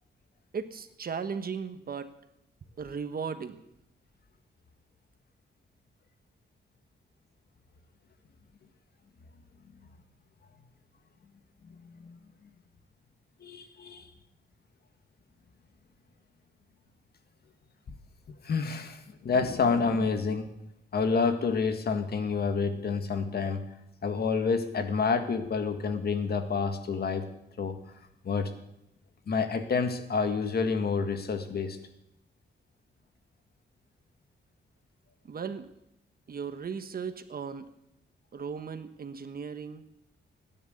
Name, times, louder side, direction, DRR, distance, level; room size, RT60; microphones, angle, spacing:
voice 1, 0.5-2.1 2.8-3.6 35.2-35.7 36.3-37.7 38.3-39.8, right 6 dB, 55° right, 9 dB, 1.4 m, -36 dB
voice 2, 11.6-12.2 13.4-14.1 18.4-20.5 20.9-23.6 24.0-27.3 27.6-27.8 28.2-28.5 29.3-31.8, left 5 dB, 60° left, 7 dB, 1.9 m, -28 dB
17.5 x 10.5 x 8.1 m, 0.82 s
cardioid pair, 100°, 18 cm